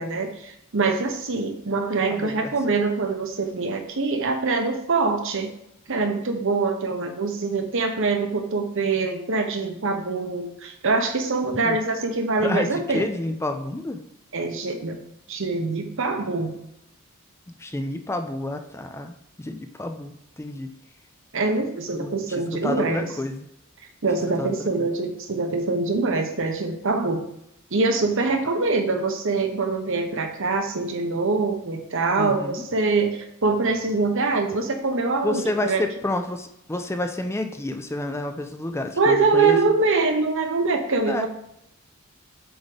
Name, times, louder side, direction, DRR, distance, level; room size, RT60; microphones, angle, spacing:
voice 1, 0.0-5.5 5.9-13.1 14.3-15.0 15.3-16.6 21.3-23.1 24.0-27.2 27.7-35.9 39.0-41.3, right 3 dB, 60° right, 5 dB, 1.0 m, -24 dB
voice 2, 2.1-2.5 11.5-11.8 12.4-14.0 17.6-20.7 21.9-23.5 24.4-24.5 32.2-32.6 35.2-39.6 41.1-41.3, left 1 dB, 10° left, 6 dB, 0.5 m, -29 dB
8.0 x 3.7 x 3.4 m, 0.79 s
head